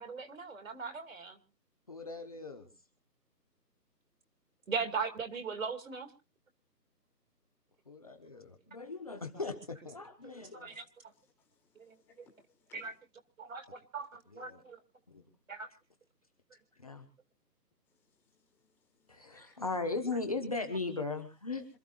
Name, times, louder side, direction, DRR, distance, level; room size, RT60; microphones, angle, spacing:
voice 1, 0.0-1.4 4.7-6.1 10.5-10.8 11.8-11.9 12.7-12.9 13.4-14.8 15.5-15.7, right 5 dB, 50° right, 7 dB, 2.5 m, -39 dB
voice 2, 1.9-2.7 7.9-10.8 14.3-14.6 15.1-15.2 16.8-17.1 19.1-21.7, left 3 dB, 20° left, 5 dB, 1.0 m, -38 dB
voice 3, 11.1-13.0 17.9-19.6, left 4 dB, 5° left, 0 dB, 1.7 m, -67 dB
27.0 x 13.5 x 2.4 m, 0.32 s
figure-of-eight pair, 160°, 49 cm